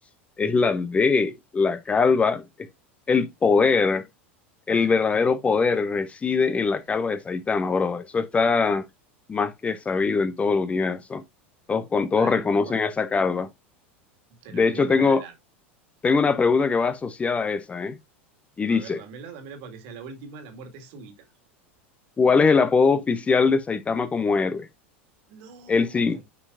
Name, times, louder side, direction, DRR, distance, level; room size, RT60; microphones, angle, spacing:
voice 1, 0.4-2.5 3.1-4.0 4.7-8.9 9.3-11.2 11.7-13.5 14.5-15.2 16.0-18.0 18.6-19.0 22.2-24.7 25.7-26.2, left 4 dB, 20° left, 0.6 m, -22 dB
voice 2, 4.7-5.1 12.1-12.9 14.3-15.3 18.7-21.3 25.3-26.2, right 5 dB, 55° right, 2.0 m, -42 dB
9.6 x 4.5 x 2.5 m
figure-of-eight pair, 85°, 7 cm